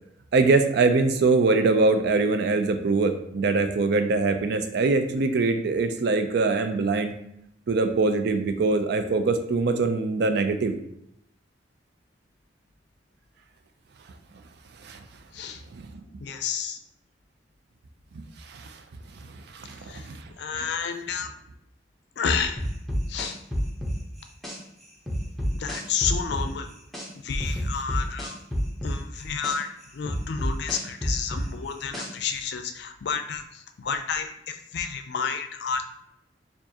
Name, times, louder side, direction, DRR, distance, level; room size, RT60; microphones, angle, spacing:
voice 1, 0.3-7.1 7.7-10.8 14.8-15.0 15.7-16.0 18.1-18.8 19.5-20.2 20.5-20.7, right 3 dB, 65° right, 8 dB, 0.4 m, -23 dB
voice 2, 16.2-16.8 19.9-20.1 20.4-21.3 22.2-22.6 23.1-23.4 25.6-26.7 27.2-28.4 28.8-35.8, left 6 dB, 65° left, 7 dB, 0.4 m, -30 dB
sound 1, 22.6-24.6 25.1-27.1 27.4-29.6 30.1-32.3, equal, ahead, 0.8 m, -28 dB
4.6 x 2.5 x 2.8 m, 0.77 s
head